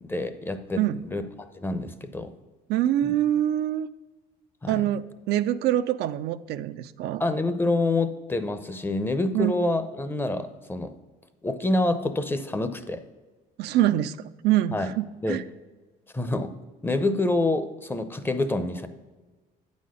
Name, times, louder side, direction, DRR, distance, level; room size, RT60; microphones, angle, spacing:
voice 1, 0.0-1.2 1.5-2.3 3.0-3.1 4.6-4.8 7.2-10.9 11.4-13.0 14.7-14.9 15.2-15.4 16.1-16.5 16.8-18.9, left 2 dB, 15° left, 10 dB, 0.6 m, -27 dB
voice 2, 2.7-3.9 4.7-7.2 9.3-9.5 13.6-14.2 14.4-15.4, right 12 dB, 75° right, 12 dB, 0.4 m, -25 dB
8.9 x 4.2 x 6.3 m, 1.3 s
cardioid pair, 110°, 17 cm